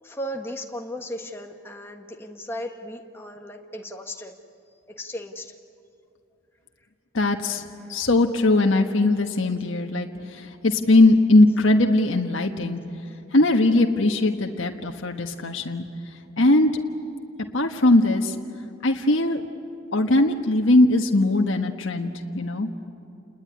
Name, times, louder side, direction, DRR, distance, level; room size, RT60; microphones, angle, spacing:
voice 1, 0.0-4.3 5.0-5.6 7.8-7.9, equal, 10° left, 3 dB, 1.5 m, -36 dB
voice 2, 7.1-7.6 7.9-12.8 13.3-15.8 16.4-16.7 17.5-18.3 18.8-19.4 19.9-22.9, left 2 dB, 70° left, 3 dB, 1.4 m, -20 dB
29.0 x 20.5 x 9.8 m, 2.7 s
head